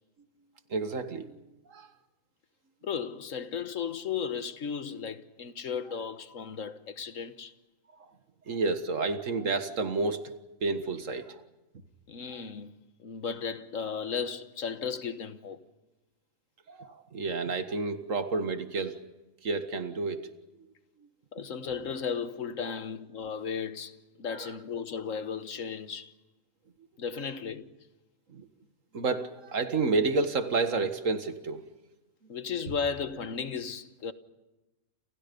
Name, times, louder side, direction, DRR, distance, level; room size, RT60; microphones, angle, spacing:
voice 1, 0.7-1.4 1.7-1.9 8.5-10.3 10.6-11.4 16.7-19.0 19.4-20.3 28.3-28.5 28.9-31.6, right 3 dB, 65° right, 2.0 m, -30 dB
voice 2, 2.8-7.5 12.1-15.6 21.3-26.1 27.0-27.8 32.3-34.1, left 6 dB, 70° left, 1.6 m, -35 dB
29.5 x 28.5 x 5.4 m
omnidirectional pair, 1.4 m